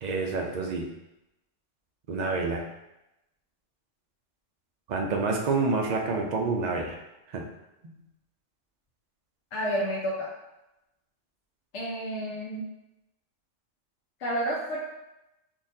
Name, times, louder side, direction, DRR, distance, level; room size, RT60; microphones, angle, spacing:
voice 1, 0.0-0.9 2.1-2.6 4.9-7.0 7.3-7.4, right 3 dB, 65° right, 1 dB, 0.4 m, -28 dB
voice 2, 9.5-10.3 11.7-12.6 14.2-14.8, equal, 70° left, -6 dB, 1.0 m, -30 dB
3.8 x 2.5 x 2.6 m, 0.92 s
omnidirectional pair, 1.3 m